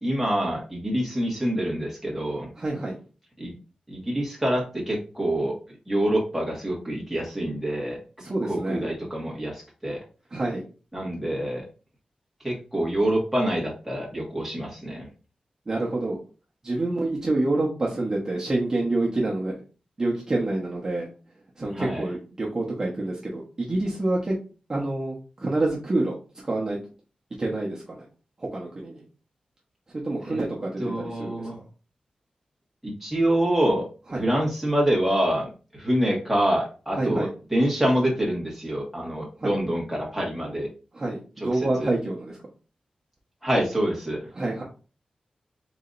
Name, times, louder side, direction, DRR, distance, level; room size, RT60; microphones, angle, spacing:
voice 1, 0.0-2.5 3.4-3.5 3.9-5.5 5.9-8.0 8.5-10.0 10.9-11.6 12.4-15.1 21.7-22.0 30.2-30.4 30.8-31.6 32.8-33.8 34.1-40.7 41.4-41.9 43.4-44.2, right 1 dB, 5° right, -3 dB, 1.6 m, -26 dB
voice 2, 2.6-3.0 8.2-8.8 10.3-10.6 15.7-16.2 16.6-19.6 20.0-21.1 21.6-24.4 24.7-26.1 26.4-26.8 27.4-28.0 28.4-29.0 30.0-31.5 34.1-34.3 37.0-37.3 39.4-39.5 40.9-42.4 44.3-44.6, right 2 dB, 30° right, -4 dB, 1.0 m, -27 dB
4.8 x 3.9 x 2.6 m, 0.36 s
wide cardioid pair, 140°, 2 cm